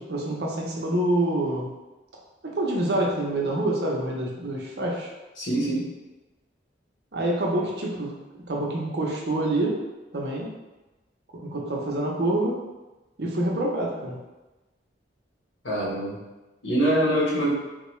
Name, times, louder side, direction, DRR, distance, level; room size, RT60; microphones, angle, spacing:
voice 1, 0.0-1.7 2.4-5.1 7.1-9.8 10.1-10.5 11.3-12.6 13.2-14.2, right 1 dB, 60° right, -2 dB, 0.6 m, -27 dB
voice 2, 5.4-5.9 15.6-16.2 16.6-17.5, right 1 dB, 90° left, -6 dB, 1.1 m, -24 dB
3.7 x 2.3 x 3.0 m, 1.1 s
head